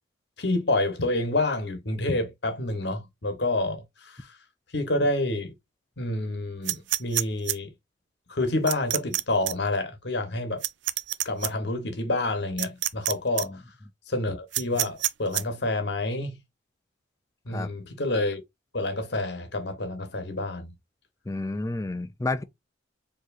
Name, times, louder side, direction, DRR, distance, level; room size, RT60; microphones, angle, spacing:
voice 1, 0.4-4.3 4.7-5.5 6.0-7.7 8.3-10.6 11.2-13.6 14.1-16.4 17.5-18.4 18.7-20.7, left 2 dB, 60° left, 1.1 m, -28 dB
sound 1, 6.7-7.6 8.7-9.2 9.5-9.6 10.6-11.5 12.6-13.1 13.4-13.5 14.5-15.4, right 15 dB, 65° right, 0.4 m, -26 dB
voice 2, 21.3-22.4, left 2 dB, 15° left, 0.3 m, -30 dB
4.7 x 3.0 x 2.5 m
head